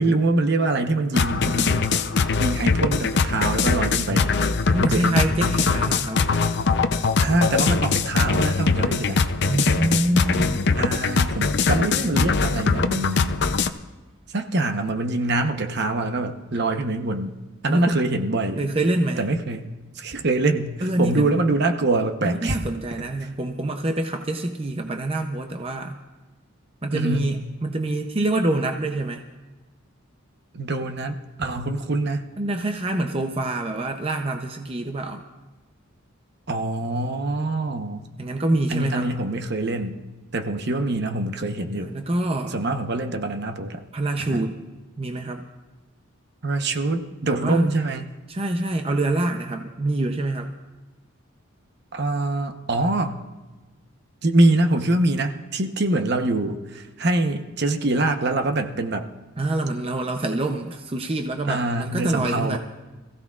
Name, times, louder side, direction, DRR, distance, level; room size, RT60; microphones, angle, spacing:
voice 1, 0.0-2.0 2.4-4.3 4.8-5.3 7.2-9.2 10.8-13.4 14.3-17.3 17.6-18.7 19.2-19.7 19.9-22.6 26.9-27.3 30.5-32.3 36.5-38.1 38.7-40.0 40.3-41.9 42.5-43.8 44.2-44.5 46.4-48.1 51.9-53.2 54.2-59.1 61.4-62.6, right 2 dB, 55° right, 6 dB, 0.9 m, -24 dB
sound 1, 1.1-13.7, left 4 dB, 55° left, 0.6 m, -22 dB
voice 2, 4.7-6.4 9.4-10.7 17.7-18.0 18.6-19.3 20.8-21.3 22.2-26.0 26.8-29.2 32.4-35.2 38.2-39.2 41.8-42.6 43.9-44.7 45.0-45.4 47.3-47.7 48.3-50.5 59.4-62.6, right 1 dB, 30° right, 4 dB, 0.6 m, -26 dB
25.5 x 15.5 x 2.4 m, 1.2 s
head